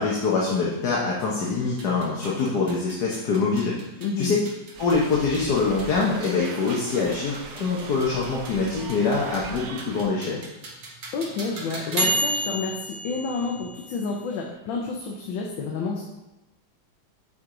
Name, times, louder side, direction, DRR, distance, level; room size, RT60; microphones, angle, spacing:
voice 1, 0.0-3.7 4.2-4.4 4.8-10.4, left 4 dB, 60° left, -4 dB, 1.5 m, -24 dB
sound 1, 1.7-14.4, right 1 dB, 50° right, 1.6 m, -33 dB
voice 2, 4.0-4.3 11.1-16.0, left 4 dB, 75° left, -1 dB, 1.6 m, -29 dB
sound 2, 4.8-10.0, right 4 dB, 85° right, 0.6 m, -40 dB
8.2 x 4.7 x 3.8 m, 0.99 s
omnidirectional pair, 2.1 m